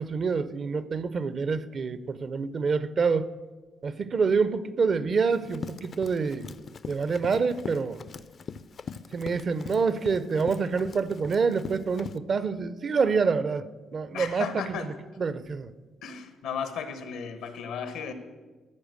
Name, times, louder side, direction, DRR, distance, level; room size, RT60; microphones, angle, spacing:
voice 1, 0.0-3.3 3.8-6.5 6.9-8.0 9.1-13.7 13.9-15.7, right 5 dB, 45° right, 0.5 m, -27 dB
Run, 5.3-12.2, left 6 dB, 50° left, 0.4 m, -41 dB
voice 2, 14.1-14.9 16.0-18.1, left 7 dB, 90° left, 1.0 m, -35 dB
14.0 x 4.7 x 6.4 m
cardioid pair, 90°, 0 cm